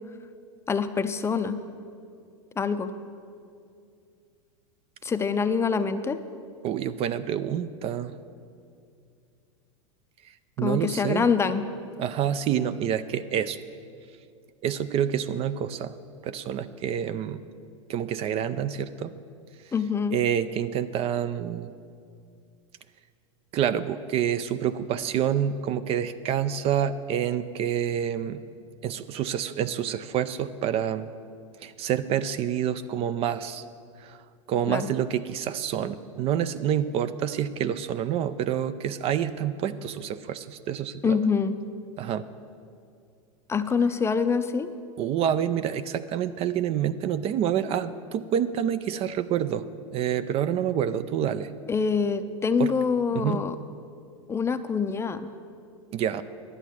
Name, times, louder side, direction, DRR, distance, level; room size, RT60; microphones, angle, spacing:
voice 1, 0.7-1.6 2.6-2.9 5.0-6.2 10.6-11.6 19.7-20.2 34.7-34.9 41.0-41.6 43.5-44.7 51.7-53.6 54.3-55.3, left 5 dB, 15° left, 10 dB, 0.5 m, -25 dB
voice 2, 6.6-8.1 10.6-11.3 12.0-13.6 14.6-15.9 16.2-17.4 17.9-19.1 20.1-21.7 23.5-28.4 28.8-31.1 31.6-33.6 34.0-34.2 34.5-41.2 42.0-42.3 45.0-49.7 49.9-51.5 52.6-52.7 53.1-53.4 55.9-56.2, right 9 dB, 35° right, 13 dB, 0.4 m, -27 dB
11.0 x 8.1 x 7.3 m, 2.4 s
hypercardioid pair, 100°, 16 cm